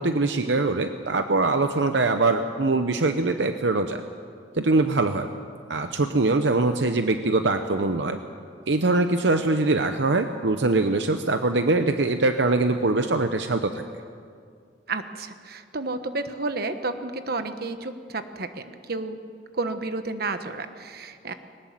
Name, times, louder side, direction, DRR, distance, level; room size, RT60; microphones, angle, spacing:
voice 1, 0.0-4.0 4.6-5.3 5.7-8.2 8.7-13.8, right 3 dB, 75° right, 7 dB, 0.8 m, -23 dB
voice 2, 14.9-19.2 19.5-21.3, right 3 dB, 60° right, 9 dB, 1.3 m, -31 dB
21.0 x 19.0 x 7.6 m, 2.2 s
head